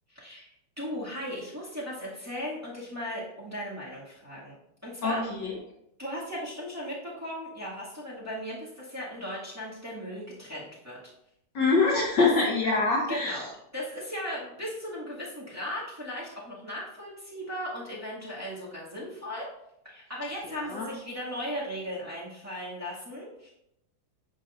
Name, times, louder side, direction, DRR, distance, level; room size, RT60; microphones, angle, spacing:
voice 1, 0.1-4.5 4.8-5.2 6.0-11.0 12.2-12.3 13.1-19.5 19.8-23.5, equal, 10° right, -7 dB, 1.7 m, -37 dB
voice 2, 5.0-5.5 11.5-13.4 20.6-20.9, left 3 dB, 60° left, -1 dB, 1.3 m, -25 dB
10.5 x 5.4 x 2.5 m, 0.81 s
omnidirectional pair, 2.3 m